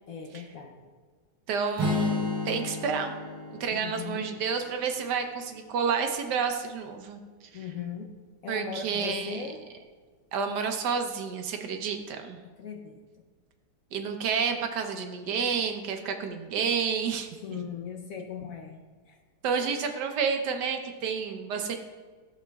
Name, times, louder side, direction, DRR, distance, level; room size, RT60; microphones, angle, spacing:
voice 1, 0.1-0.9 3.7-4.2 7.5-8.1 8.4-9.6 12.4-13.0 17.4-19.2 19.6-19.7, left 6 dB, 65° left, 3 dB, 1.0 m, -39 dB
voice 2, 1.5-3.1 3.6-7.2 8.5-9.5 10.3-12.4 13.9-17.6 19.4-21.8, right 6 dB, 75° right, 5 dB, 1.3 m, -30 dB
Strum, 1.8-5.9, left 3 dB, 25° right, 1.9 m, -33 dB
13.5 x 7.1 x 2.3 m, 1.4 s
omnidirectional pair, 1.9 m